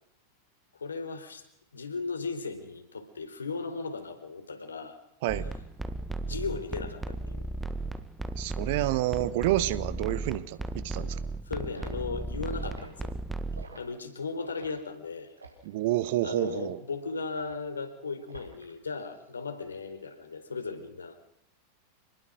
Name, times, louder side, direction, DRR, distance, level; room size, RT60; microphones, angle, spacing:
voice 1, 0.8-1.4 1.7-5.0 6.2-7.5 11.5-13.1 13.7-15.3 16.2-21.1, left 4 dB, 75° left, 7 dB, 4.3 m, -36 dB
sound 1, 5.3-13.7, right 2 dB, 10° right, 1.6 m, -35 dB
voice 2, 8.4-11.2 15.6-16.8, right 16 dB, 50° right, 15 dB, 1.3 m, -29 dB
Liquid, 11.7-11.9 12.6-12.9 13.5-13.8 14.4-14.7 15.4-15.7 16.4-16.6 17.3-17.6 18.3-18.7 19.0-19.3, right 3 dB, 80° right, 5.2 m, -48 dB
28.0 x 20.5 x 6.4 m, 0.74 s
figure-of-eight pair, 90°, 0 cm